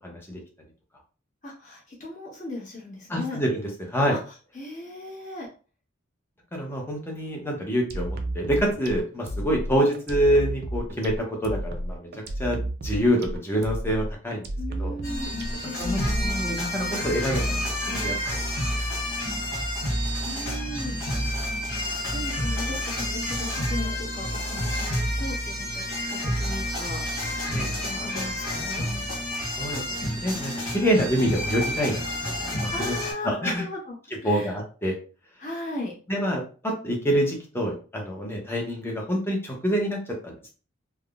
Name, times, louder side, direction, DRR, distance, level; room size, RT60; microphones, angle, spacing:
voice 1, 0.0-0.4 3.1-4.2 6.5-12.1 12.4-14.4 14.8-14.9 15.8-18.4 27.5-27.7 29.6-33.0 33.2-33.6 34.2-35.0 36.1-40.5, equal, 10° left, 0 dB, 0.7 m, -26 dB
voice 2, 1.4-3.4 4.1-5.5 14.6-16.4 20.2-21.0 22.1-27.4 27.8-28.9 32.7-34.0 34.2-34.6 35.4-36.0, left 2 dB, 40° left, -3 dB, 1.2 m, -37 dB
sound 1, 7.9-16.5, right 1 dB, 50° right, 0.4 m, -32 dB
sound 2, 15.0-33.1, equal, 70° left, 1.3 m, -29 dB
3.4 x 2.1 x 2.4 m, 0.37 s
head